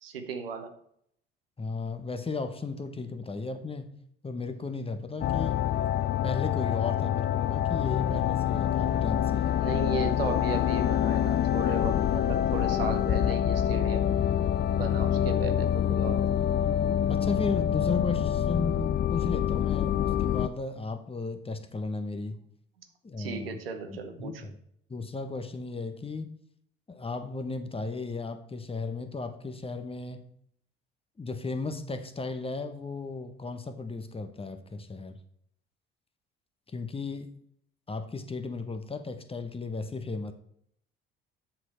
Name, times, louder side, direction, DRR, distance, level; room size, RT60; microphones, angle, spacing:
voice 1, 0.0-0.7 9.6-14.2 14.7-16.2 23.2-24.5, right 5 dB, 85° right, 7 dB, 1.0 m, -36 dB
voice 2, 1.6-4.0 4.2-5.6 6.2-9.6 17.1-22.4 23.0-23.6 23.9-24.5 24.9-26.3 26.9-30.3 31.2-35.1 36.7-37.3 37.9-40.3, left 3 dB, 20° left, 9 dB, 1.1 m, -35 dB
sound 1, 5.2-20.5, left 10 dB, 35° left, 0.5 m, -26 dB
7.9 x 6.4 x 4.4 m, 0.69 s
figure-of-eight pair, 55°, 29 cm